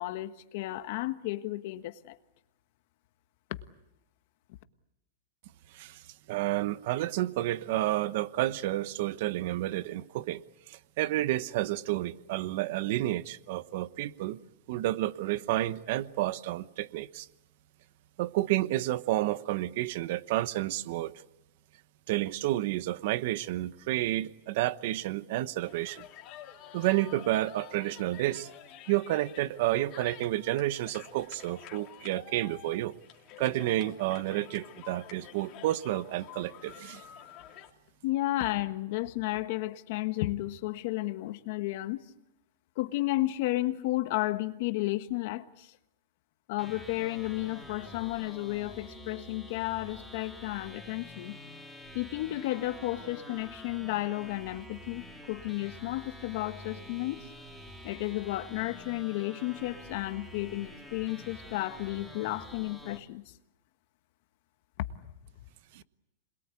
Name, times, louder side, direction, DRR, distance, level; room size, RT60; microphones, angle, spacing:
voice 1, 0.0-2.2 38.0-42.0 42.8-45.8 46.5-51.4 51.9-57.2 57.8-63.2 64.9-65.1, left 17 dB, 55° left, 1.4 m, -33 dB
voice 2, 6.3-10.4 10.7-14.4 14.7-17.3 18.2-21.1 22.1-26.0 26.7-28.5 28.9-32.9 33.4-37.0 65.7-65.8, right 15 dB, 55° right, 1.0 m, -30 dB
sound 1, 25.7-37.7, left 12 dB, 35° left, 2.9 m, -49 dB
sound 2, 46.6-63.0, left 1 dB, 5° right, 3.2 m, -47 dB
27.0 x 21.5 x 8.5 m
supercardioid pair, 145°, 0 cm